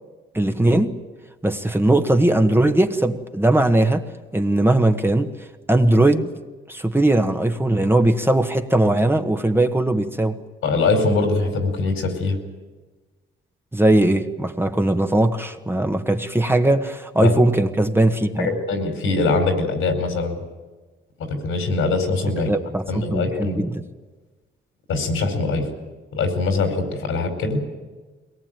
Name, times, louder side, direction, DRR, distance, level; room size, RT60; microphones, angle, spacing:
voice 1, 0.3-0.9 1.4-4.0 4.3-5.3 5.7-6.3 6.7-10.4 13.7-18.5 22.5-23.8, right 1 dB, 10° right, 5 dB, 1.5 m, -19 dB
voice 2, 10.6-12.3 17.2-17.4 18.4-20.4 21.2-22.5 22.9-23.6 24.9-25.6 26.1-27.6, left 3 dB, 85° left, 5 dB, 4.7 m, -22 dB
22.0 x 19.0 x 9.2 m, 1.3 s
cardioid pair, 75°, 21 cm